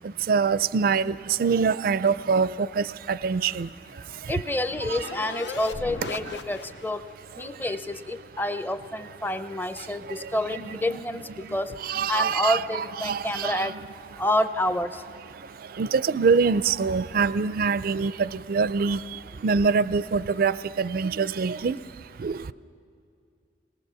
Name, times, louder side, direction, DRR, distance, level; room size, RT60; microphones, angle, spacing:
voice 1, 0.0-4.4 4.9-5.1 7.4-7.6 9.8-10.3 11.4-13.8 15.3-22.5, right 5 dB, 55° right, 17 dB, 0.4 m, -25 dB
sound 1, 3.5-7.1, left 3 dB, 85° left, 0.8 m, -39 dB
voice 2, 4.3-7.0 7.4-11.7 12.1-13.7 14.2-15.0, left 1 dB, 10° left, 11 dB, 0.6 m, -28 dB
20.0 x 19.0 x 6.9 m, 2.4 s
head